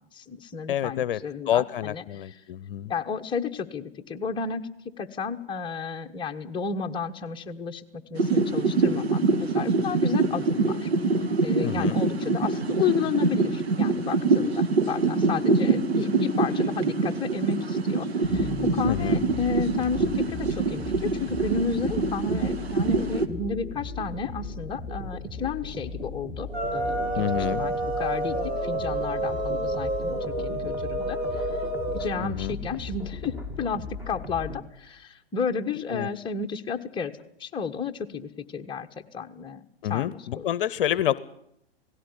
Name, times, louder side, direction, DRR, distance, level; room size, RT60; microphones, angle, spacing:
voice 1, 0.1-2.4 2.9-4.6 5.0-7.8 8.1-10.9 11.4-31.2 31.9-37.1 37.4-38.9 39.1-39.6 39.9-40.5, left 6 dB, 15° left, 3 dB, 1.3 m, -32 dB
voice 2, 0.7-1.2 1.5-2.9 11.6-12.0 18.9-19.2 27.2-27.6 32.2-32.6 35.9-36.1 39.8-41.2, left 11 dB, 60° left, 19 dB, 0.8 m, -28 dB
sound 1, 8.1-23.3, right 3 dB, 80° right, 2.0 m, -25 dB
sound 2, 18.2-34.6, left 2 dB, 5° right, 2.7 m, -37 dB
sound 3, 26.5-32.2, right 1 dB, 30° right, 3.0 m, -29 dB
17.5 x 16.5 x 9.9 m, 0.73 s
hypercardioid pair, 120°, 31 cm